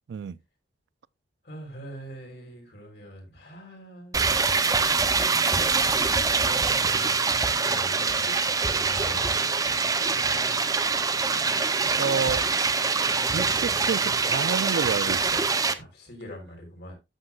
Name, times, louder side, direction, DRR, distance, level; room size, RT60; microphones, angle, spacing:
voice 1, 1.4-4.4 5.6-6.8 7.7-8.4 8.7-9.3 15.7-16.9, equal, 60° left, 3.7 m, -43 dB
sound 1, 4.1-15.7, right 4 dB, 20° right, 0.6 m, -24 dB
voice 2, 12.0-12.5 13.3-15.5, right 6 dB, 65° right, 0.3 m, -29 dB
11.5 x 7.7 x 2.3 m
head